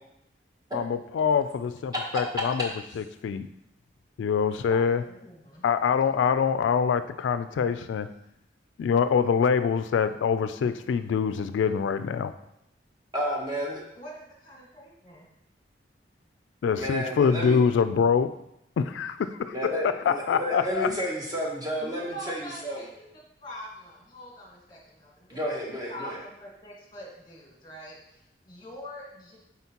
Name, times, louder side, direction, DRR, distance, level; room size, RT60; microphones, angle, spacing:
voice 1, 0.7-2.7 3.0-3.5 4.2-5.0 5.6-8.1 8.8-12.3 16.6-18.3 18.8-19.7 20.1-20.9, left 6 dB, 90° left, 12 dB, 0.3 m, -25 dB
voice 2, 4.7-5.6 13.9-15.2 21.8-25.4 25.9-29.4, equal, 25° left, -2 dB, 1.5 m, -44 dB
voice 3, 13.1-13.8 16.7-17.6 19.5-22.8 25.3-26.2, equal, 20° right, -2 dB, 1.0 m, -31 dB
8.0 x 4.2 x 2.9 m, 0.79 s
head